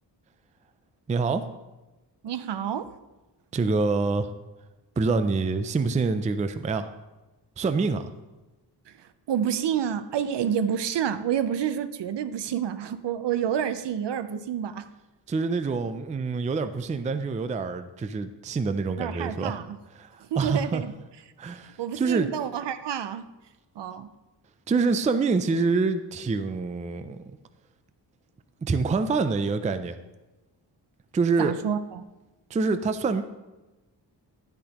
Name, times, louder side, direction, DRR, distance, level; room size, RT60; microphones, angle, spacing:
voice 1, 1.1-1.5 3.5-4.3 5.0-6.9 7.6-8.0 15.3-19.6 20.0-20.8 21.4-22.3 24.7-27.2 28.6-30.0 31.1-31.5 32.5-33.2, right 4 dB, 20° right, 0.3 m, -26 dB
voice 2, 2.2-2.9 9.3-14.9 19.0-19.8 20.3-20.9 21.8-23.2 23.8-24.1 31.4-32.0, right 9 dB, 70° right, 0.6 m, -28 dB
10.5 x 10.0 x 2.9 m
wide cardioid pair, 160°, 44 cm